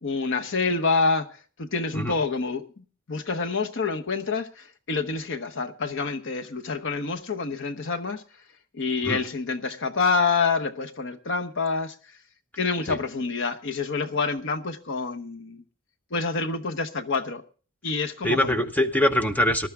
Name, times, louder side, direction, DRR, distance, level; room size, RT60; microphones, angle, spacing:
voice 1, 0.0-1.3 1.6-8.2 8.7-11.9 12.6-15.6 16.1-17.4 17.8-18.5, left 4 dB, 55° left, 1.0 m, -27 dB
voice 2, 18.2-19.7, left 1 dB, 5° left, 0.8 m, -23 dB
19.5 x 12.0 x 3.6 m
head